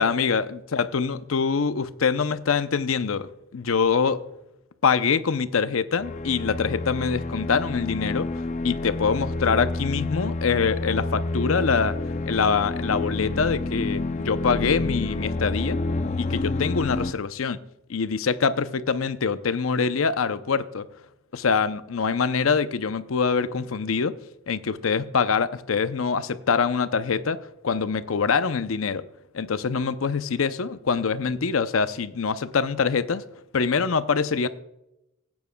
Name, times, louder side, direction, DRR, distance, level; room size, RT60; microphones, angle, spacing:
voice 1, 0.0-4.2 4.8-8.3 8.6-12.0 12.3-15.8 16.2-17.6 17.9-20.9 21.3-24.2 24.5-27.4 27.6-29.1 29.3-33.2 33.5-34.5, left 5 dB, 85° left, 0.6 m, -24 dB
sound 1, 6.0-17.1, left 2 dB, 35° left, 0.5 m, -29 dB
17.0 x 9.4 x 2.3 m
head